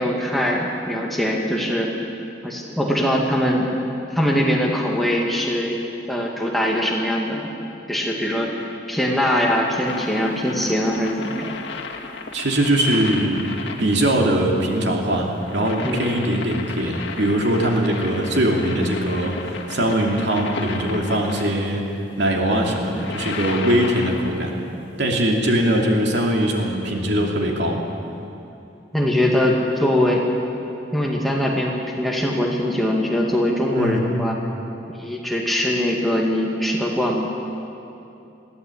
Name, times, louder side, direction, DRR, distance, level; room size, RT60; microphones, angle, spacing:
voice 1, 0.0-1.9 2.4-3.7 4.1-5.8 6.1-7.5 7.9-11.5 15.8-16.2 28.9-30.2 30.9-34.4 34.9-37.3, equal, ahead, -2 dB, 2.1 m, -22 dB
sound 1, 9.8-21.6 22.7-24.6 26.1-26.2, left 4 dB, 85° left, 1.9 m, -34 dB
voice 2, 12.3-21.8 22.2-24.5 25.0-27.8 33.8-34.0, right 1 dB, 70° right, 1 dB, 2.8 m, -21 dB
21.5 x 15.0 x 8.7 m, 2.8 s
head